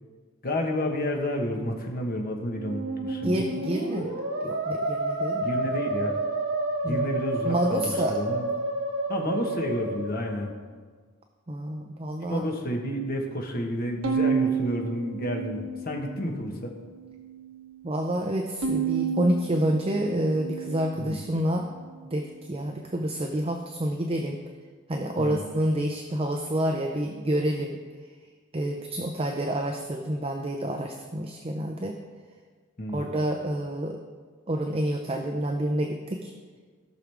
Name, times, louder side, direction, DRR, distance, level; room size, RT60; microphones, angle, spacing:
voice 1, 0.4-3.4 5.4-6.2 6.8-8.5 9.1-10.5 12.3-16.7 21.0-21.2 25.2-25.4 32.8-33.1, left 1 dB, 45° left, 1 dB, 1.4 m, -30 dB
Musical instrument, 2.4-10.5, right 2 dB, 70° right, 3.5 m, -30 dB
voice 2, 3.2-5.6 6.8-7.2 7.4-8.2 11.5-12.4 17.8-21.7 22.1-24.4 24.9-27.8 28.5-32.0 32.9-34.0 34.5-36.3, right 1 dB, 30° right, 3 dB, 0.6 m, -28 dB
Bowed string instrument, 14.0-16.4 16.9-17.6 18.6-21.1, right 6 dB, 85° right, 0.9 m, -30 dB
16.5 x 6.2 x 3.5 m, 1.5 s
head